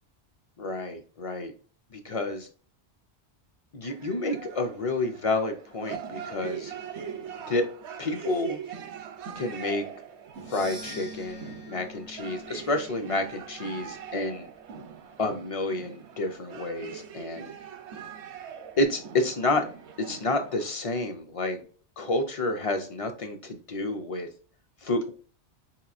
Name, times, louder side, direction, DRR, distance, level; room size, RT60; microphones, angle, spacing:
voice 1, 0.6-1.5 1.9-2.5 3.7-6.7 7.5-7.7 8.0-8.6 9.4-9.8 10.5-14.5 15.2-17.5 18.8-19.6 20.1-21.6 22.0-24.3 24.8-25.1, left 2 dB, 45° left, 6 dB, 0.5 m, -29 dB
sound 1, 3.8-20.7, right 7 dB, 80° right, 0.9 m, -42 dB
sound 2, 10.3-14.7, equal, 80° left, 1.4 m, -46 dB
4.6 x 2.9 x 2.4 m, 0.40 s
omnidirectional pair, 1.1 m